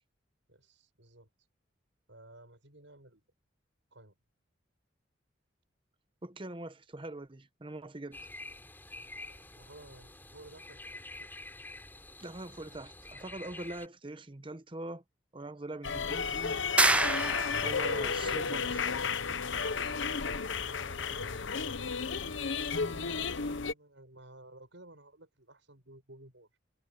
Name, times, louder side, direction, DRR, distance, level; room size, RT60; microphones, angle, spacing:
voice 1, 0.5-1.3 2.1-3.2 3.9-4.2 8.9-11.3 20.6-21.4 22.7-26.6, right 1 dB, 75° right, 7.1 m, -55 dB
voice 2, 6.2-8.2 12.2-15.0 15.3-16.6 17.6-19.3, right 2 dB, 25° right, 1.0 m, -43 dB
sound 1, 8.1-13.9, left 2 dB, 10° left, 5.8 m, -48 dB
sound 2, 15.8-23.7, left 5 dB, 80° left, 1.0 m, -33 dB
sound 3, 16.8-17.9, right 2 dB, 5° right, 0.4 m, -26 dB
head